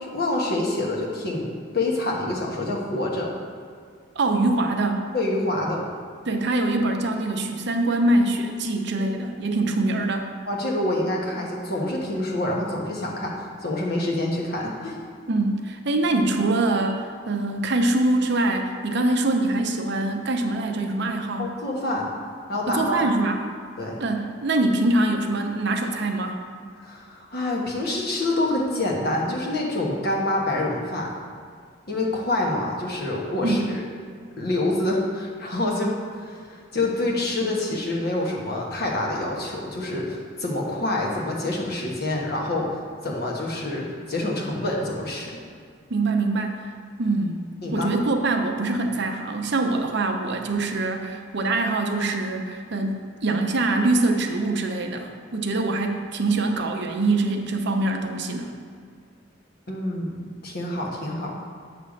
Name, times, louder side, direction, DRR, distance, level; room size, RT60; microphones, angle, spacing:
voice 1, 0.0-3.3 5.1-5.8 9.0-9.1 10.5-15.0 21.4-22.1 22.5-23.0 23.8-24.0 26.8-31.1 31.9-33.8 34.4-42.7 43.0-45.4 47.6-47.9 59.7-61.3, left 1 dB, 55° left, -2 dB, 1.2 m, -27 dB
voice 2, 4.2-5.1 6.3-10.3 15.3-21.5 22.7-23.5 24.0-26.4 33.4-33.7 45.9-46.6 47.0-47.4 47.7-58.5, right 2 dB, 60° right, 4 dB, 0.7 m, -24 dB
8.6 x 3.3 x 6.4 m, 2.1 s
head